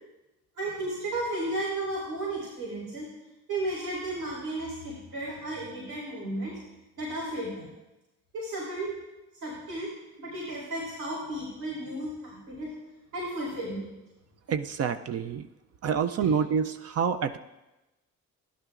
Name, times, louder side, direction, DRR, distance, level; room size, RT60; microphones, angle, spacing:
voice 1, 0.6-3.1 3.5-6.6 7.0-7.7 8.3-9.0 9.4-9.9 10.2-12.7 13.1-13.9, right 1 dB, 85° right, -7 dB, 4.4 m, -33 dB
voice 2, 14.5-15.5 15.8-17.4, right 7 dB, 55° right, 9 dB, 0.5 m, -27 dB
14.0 x 11.0 x 2.5 m, 1.0 s
cardioid pair, 90°, 30 cm